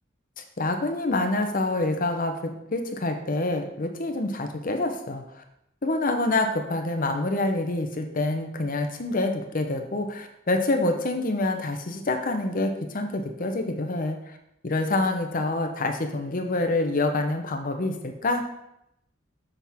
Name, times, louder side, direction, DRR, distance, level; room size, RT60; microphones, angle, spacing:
voice 1, 0.6-5.4 5.8-14.2 14.6-18.4, left 2 dB, 45° left, 4 dB, 0.8 m, -26 dB
7.0 x 5.8 x 3.6 m, 0.81 s
head